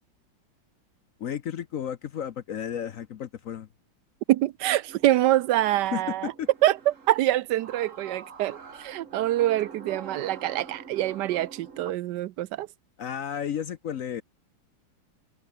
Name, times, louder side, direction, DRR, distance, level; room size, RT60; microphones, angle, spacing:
voice 1, 1.2-3.7 5.9-6.5 13.0-14.2, left 9 dB, 60° left, 0.8 m, -33 dB
voice 2, 4.3-6.3 6.6-6.8 7.1-12.7, right 14 dB, 70° right, 1.0 m, -25 dB
sound 1, 4.9-11.9, right 5 dB, 40° right, 2.0 m, -45 dB
omnidirectional pair, 2.3 m